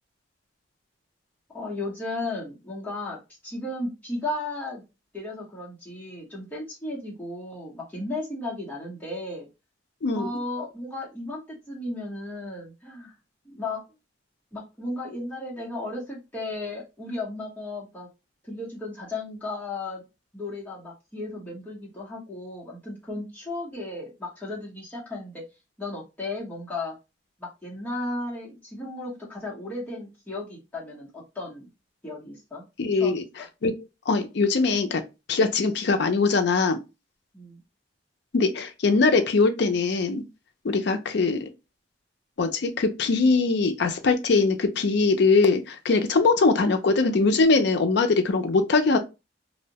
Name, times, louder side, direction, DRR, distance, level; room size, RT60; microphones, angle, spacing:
voice 1, 1.5-4.8 5.1-9.5 10.1-13.1 13.4-13.8 14.5-18.1 18.4-20.0 20.3-25.4 25.8-27.0 27.4-31.7 32.0-32.7 32.9-33.5 37.3-37.6, left 2 dB, 10° left, 0.8 m, -35 dB
voice 2, 32.8-33.2 33.6-33.7 34.1-35.0 35.3-36.8 38.3-40.2 40.6-41.5 42.4-49.0, left 4 dB, 65° left, 0.5 m, -22 dB
2.6 x 2.1 x 2.7 m
head